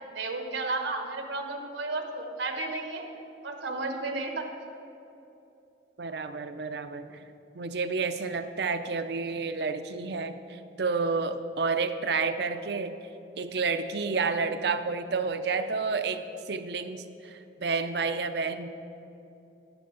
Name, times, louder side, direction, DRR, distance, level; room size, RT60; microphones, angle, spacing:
voice 1, 0.0-3.0 3.4-4.5, right 3 dB, 80° right, 4 dB, 1.1 m, -33 dB
voice 2, 6.0-7.2 7.5-13.0 13.4-18.7, right 4 dB, 60° right, 9 dB, 0.5 m, -30 dB
10.5 x 10.5 x 3.9 m, 2.9 s
head